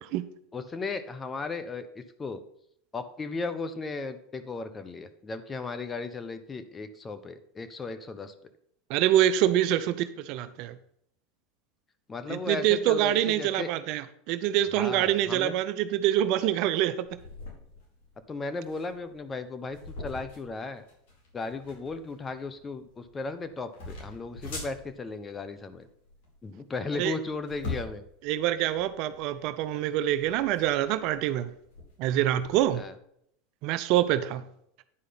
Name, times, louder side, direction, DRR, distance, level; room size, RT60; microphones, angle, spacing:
voice 1, 0.5-2.4 2.9-8.3 12.1-13.7 14.7-15.5 18.3-20.8 21.3-25.9 26.4-28.0 32.7-32.9, left 3 dB, 20° left, 1.0 m, -36 dB
voice 2, 8.9-10.7 12.3-17.1 26.9-27.2 28.2-31.5 32.0-32.8 33.6-34.4, right 12 dB, 60° right, 0.6 m, -25 dB
sound 1, 17.0-32.8, left 3 dB, 65° left, 4.3 m, -44 dB
9.9 x 4.9 x 5.8 m
hypercardioid pair, 100°, 0 cm